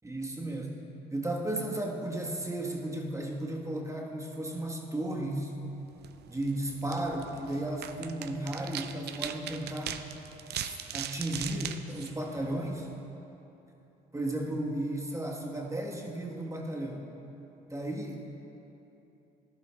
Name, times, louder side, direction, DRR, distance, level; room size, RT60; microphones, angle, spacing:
voice 1, 0.0-0.8 1.1-5.5 6.3-10.0 10.5-12.9 14.1-17.1 17.7-18.4, right 1 dB, 15° right, -1 dB, 1.3 m, -34 dB
sound 1, 5.9-12.9, right 10 dB, 60° right, 0.5 m, -41 dB
12.5 x 11.0 x 2.3 m, 3.0 s
hypercardioid pair, 60°, 20 cm